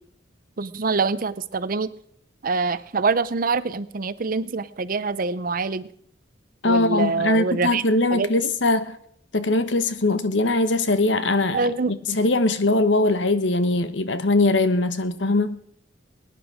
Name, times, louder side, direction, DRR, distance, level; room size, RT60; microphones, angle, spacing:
voice 1, 0.6-1.9 2.4-5.9 6.6-7.8 8.1-8.5 11.5-11.9, right 4 dB, 50° right, 0.6 m, -25 dB
voice 2, 6.6-9.0 9.3-15.6, left 2 dB, 75° left, 1.1 m, -21 dB
21.5 x 10.0 x 5.0 m
head